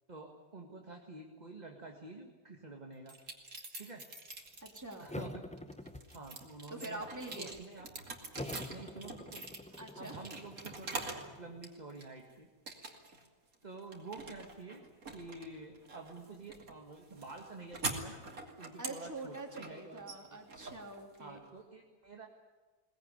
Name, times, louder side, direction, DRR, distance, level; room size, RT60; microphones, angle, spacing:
voice 1, 0.1-3.1 3.8-4.0 5.0-5.4 6.1-7.0 7.3-7.9 8.7-9.4 10.0-11.1 11.4-12.5 13.6-14.8 15.1-18.2 18.6-20.4 21.2-22.3, right 3 dB, 25° right, 2 dB, 1.9 m, -49 dB
sound 1, 3.1-5.1 5.6-11.3 11.6-12.2 12.7-13.3 13.5-21.5, right 3 dB, 60° right, 2.9 m, -45 dB
voice 2, 4.6-5.1 6.7-7.5 9.8-10.2 18.8-21.4, right 2 dB, 10° right, 1 dB, 3.1 m, -45 dB
sound 2, 5.1-6.6 6.9-7.7 8.3-11.6, left 1 dB, 10° left, 0.4 m, -47 dB
21.5 x 19.5 x 9.8 m, 1.3 s
omnidirectional pair, 1.6 m